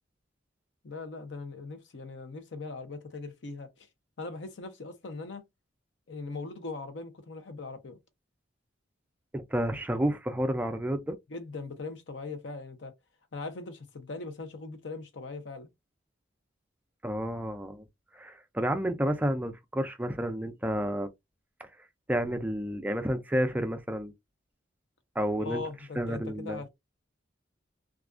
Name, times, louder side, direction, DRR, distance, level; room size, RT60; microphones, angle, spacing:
voice 1, 0.8-3.9 4.2-5.4 6.1-8.0 11.3-12.9 13.3-15.7 25.4-26.7, left 3 dB, 65° left, 0.6 m, -40 dB
voice 2, 9.3-11.2 17.0-17.8 18.1-21.1 21.6-21.7 22.1-24.1 25.2-25.6 26.0-26.6, equal, 10° right, 0.3 m, -30 dB
2.4 x 2.2 x 2.4 m
head